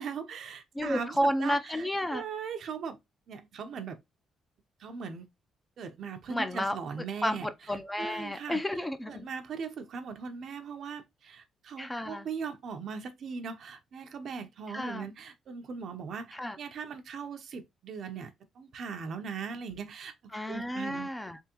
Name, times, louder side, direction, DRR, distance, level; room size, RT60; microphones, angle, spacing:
voice 1, 0.0-3.0 3.3-4.0 4.8-5.3 5.8-7.5 8.0-8.6 9.1-20.1 20.5-21.1, right 6 dB, 65° right, 0.7 m, -39 dB
voice 2, 0.7-2.2 6.3-6.8 7.2-9.3 11.8-12.3 14.7-15.1 16.3-16.6 20.3-21.4, equal, 10° left, 0.6 m, -31 dB
3.5 x 3.3 x 2.9 m
cardioid pair, 90°, 0 cm